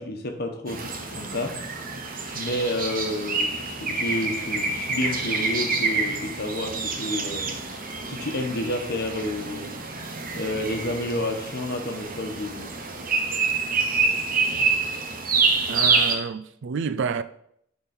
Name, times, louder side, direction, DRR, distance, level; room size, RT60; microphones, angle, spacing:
voice 1, 0.0-1.6 2.3-7.5 8.1-9.8 10.3-12.7, left 1 dB, 55° left, 1.2 m, -30 dB
sound 1, 0.7-16.2, right 4 dB, 45° right, 1.0 m, -27 dB
voice 2, 15.7-17.2, right 5 dB, 65° right, 0.4 m, -29 dB
10.5 x 3.8 x 4.4 m
head